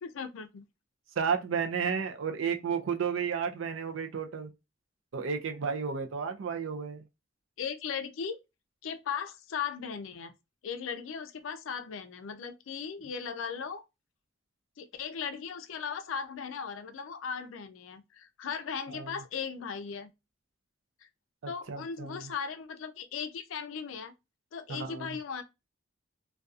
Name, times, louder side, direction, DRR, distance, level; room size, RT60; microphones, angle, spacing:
voice 1, 0.0-0.6 7.6-8.4 8.8-10.3 10.6-13.8 14.8-20.1 21.5-24.1 24.5-25.4, left 6 dB, 85° left, 0.4 m, -37 dB
voice 2, 1.2-4.5 5.1-7.0 18.9-19.1 21.7-22.3 24.7-25.2, right 6 dB, 80° right, 0.4 m, -32 dB
2.3 x 2.2 x 2.5 m
head